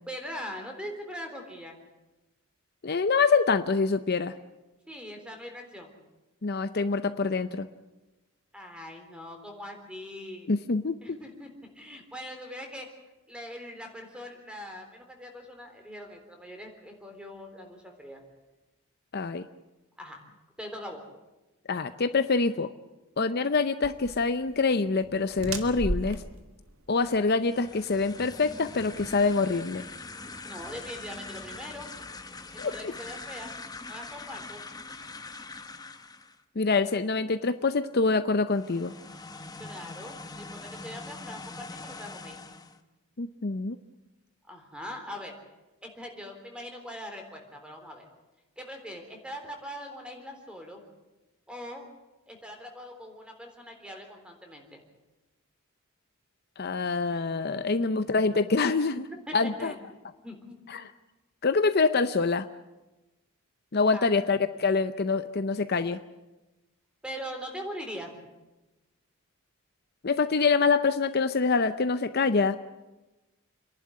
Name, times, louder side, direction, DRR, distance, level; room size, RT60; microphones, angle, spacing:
voice 1, 0.1-1.8 4.9-5.9 8.5-10.5 11.0-12.9 13.3-18.2 20.0-20.2 20.6-21.0 30.5-31.9 32.5-33.5 33.9-34.6 39.6-42.4 44.5-45.3 45.8-48.1 48.6-50.8 51.5-51.9 52.3-54.8 57.5-57.9 58.9-59.7 60.2-60.7 63.9-64.1 67.0-68.1, equal, 5° right, 4 dB, 3.7 m, -42 dB
voice 2, 2.8-4.3 6.4-7.7 10.5-11.2 19.1-19.5 21.7-22.7 23.2-26.2 26.9-29.8 32.6-32.7 36.6-38.9 43.2-43.8 56.6-59.0 59.3-59.7 60.7-60.9 61.4-62.5 63.7-66.0 70.0-72.6, left 4 dB, 50° left, 11 dB, 0.6 m, -25 dB
sound 1, 23.8-29.9, right 2 dB, 75° right, 1.7 m, -38 dB
sound 2, 27.4-36.4 38.5-42.8, left 3 dB, 20° left, 1.0 m, -43 dB
29.0 x 11.5 x 9.8 m, 1.1 s
head